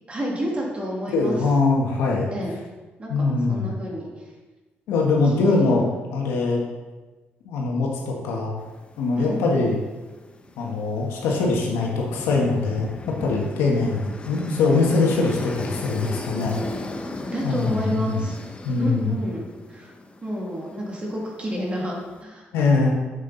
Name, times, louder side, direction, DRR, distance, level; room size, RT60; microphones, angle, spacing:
voice 1, 0.1-1.4 2.3-2.6 3.0-4.2 5.5-5.8 9.2-9.4 17.2-18.4 18.8-19.9 20.2-22.9, equal, 30° right, -2 dB, 2.5 m, -30 dB
voice 2, 1.1-2.3 3.1-3.7 4.9-5.8 6.1-6.6 7.4-8.5 9.0-9.8 10.6-12.9 13.2-16.6 17.4-18.2 18.6-19.2 22.5-22.9, left 3 dB, 90° left, -2 dB, 1.6 m, -22 dB
sound 1, 8.6-22.2, left 2 dB, 25° left, 0.8 m, -37 dB
7.6 x 6.8 x 4.1 m, 1.2 s
cardioid pair, 85°, 4 cm